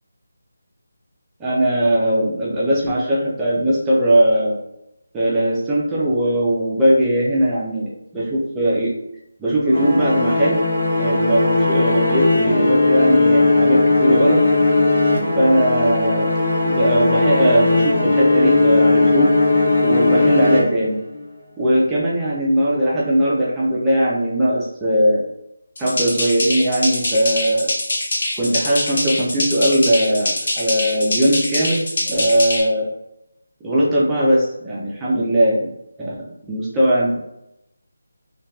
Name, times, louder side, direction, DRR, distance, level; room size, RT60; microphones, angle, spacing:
voice 1, 1.4-4.6 5.1-8.9 9.4-10.6 11.0-14.4 15.4-16.3 16.6-19.3 19.8-21.0 21.6-25.2 25.8-27.7 28.4-32.8 33.6-35.6 36.0-36.2 36.5-37.1, right 1 dB, 5° right, -7 dB, 0.3 m, -19 dB
sound 1, 9.7-21.2, left 2 dB, 70° left, 1.0 m, -18 dB
sound 2, 25.8-32.6, left 1 dB, 45° left, 0.6 m, -24 dB
2.7 x 2.2 x 2.2 m, 0.85 s
figure-of-eight pair, 175°, 0 cm